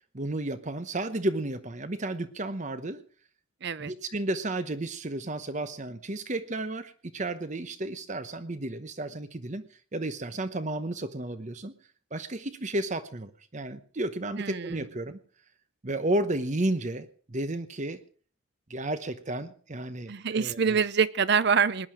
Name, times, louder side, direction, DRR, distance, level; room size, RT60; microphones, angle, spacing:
voice 1, 0.1-3.0 3.8-9.6 9.9-11.7 12.1-15.2 15.8-18.0 18.7-20.8, right 1 dB, 35° right, 12 dB, 0.9 m, -32 dB
voice 2, 3.6-3.9 14.4-14.8 20.1-21.9, right 6 dB, 55° right, 17 dB, 0.6 m, -25 dB
19.5 x 11.0 x 6.2 m, 0.43 s
head